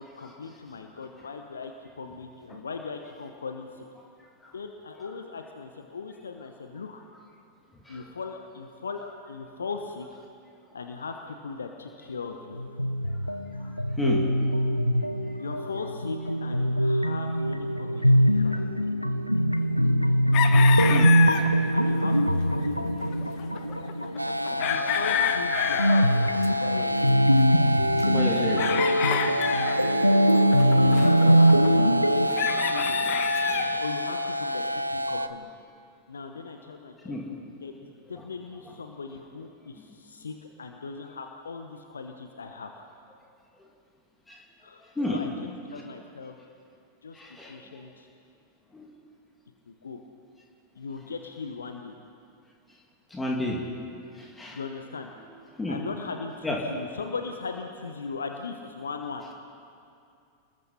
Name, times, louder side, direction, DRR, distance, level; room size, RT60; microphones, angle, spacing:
voice 1, 0.0-3.8 4.5-7.0 7.9-10.1 10.7-12.6 15.4-18.5 20.4-23.1 24.6-27.1 28.3-29.3 29.8-30.7 31.2-33.2 33.8-35.5 36.1-37.2 37.6-42.7 44.6-46.3 47.0-47.2 47.5-48.1 49.7-50.0 50.7-51.9 54.5-55.1 55.7-59.2, left 4 dB, 70° left, 5 dB, 1.1 m, -39 dB
sound 1, 12.5-32.3, equal, 90° left, 0.7 m, -23 dB
sound 2, 20.3-21.5 21.9-22.0 22.2-22.3 22.5-22.7 23.0-26.7 26.9-33.8, left 9 dB, 45° left, 1.3 m, -30 dB
sound 3, 24.2-35.3, equal, 85° right, 0.7 m, -28 dB
voice 2, 28.0-28.6 37.0-37.2 44.3-44.4 45.0-45.2 47.1-47.6 48.7-48.9 53.1-53.6 54.2-54.6 55.6-55.8 56.4-56.6, left 1 dB, 10° left, -1 dB, 2.6 m, -31 dB
29.5 x 20.5 x 4.3 m, 2.5 s
figure-of-eight pair, 90°, 0 cm